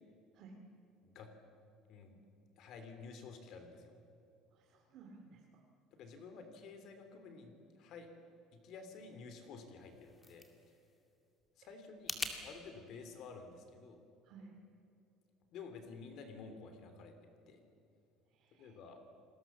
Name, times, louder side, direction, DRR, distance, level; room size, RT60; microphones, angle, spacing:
voice 1, 2.6-3.9 5.9-8.1 8.5-10.8 11.6-14.0 15.5-17.1 17.5-17.6 18.5-19.0, left 4 dB, 50° left, 7 dB, 3.1 m, -52 dB
voice 2, 4.5-5.6 14.2-14.5 18.3-18.8, right 4 dB, 50° right, 2 dB, 2.5 m, -57 dB
sound 1, 9.7-12.4, left 2 dB, 10° left, 2.3 m, -45 dB
29.5 x 20.5 x 7.3 m, 2.6 s
cardioid pair, 165°, 0 cm